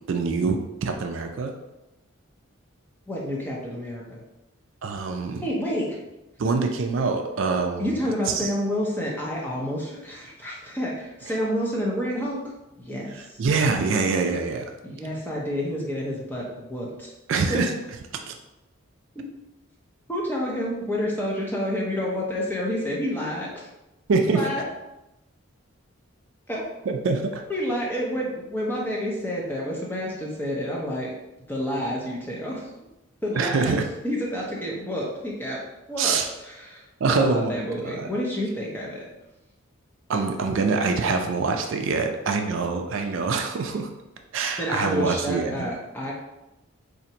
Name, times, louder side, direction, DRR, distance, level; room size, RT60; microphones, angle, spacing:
voice 1, 0.1-1.5 4.8-5.5 6.4-7.9 8.3-8.5 13.4-14.7 17.3-17.7 18.3-18.4 24.1-24.5 26.9-27.4 33.4-33.9 36.0-36.3 37.0-38.1 40.1-43.9 44.3-45.7, right 4 dB, 60° right, 4 dB, 0.4 m, -25 dB
voice 2, 3.1-4.2 5.3-6.0 7.8-12.4 12.8-13.4 14.8-17.1 17.5-17.6 20.1-23.7 24.3-24.6 26.5-26.6 27.5-31.1 31.5-32.7 33.2-33.7 34.0-35.6 35.9-39.0 44.6-46.1, equal, 10° left, -4 dB, 0.6 m, -29 dB
4.2 x 2.5 x 2.8 m, 0.96 s
head